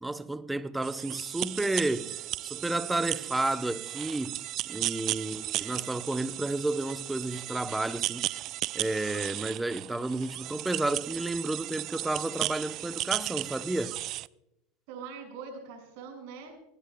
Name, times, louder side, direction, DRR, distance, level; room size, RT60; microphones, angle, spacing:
voice 1, 0.0-4.4 4.6-8.4 8.7-14.0, right 2 dB, 10° right, 0.8 m, -31 dB
sound 1, 0.8-14.3, right 15 dB, 50° right, 0.4 m, -35 dB
voice 2, 14.9-16.5, right 5 dB, 65° right, 6.2 m, -43 dB
19.0 x 18.5 x 2.3 m
hypercardioid pair, 105°, 0 cm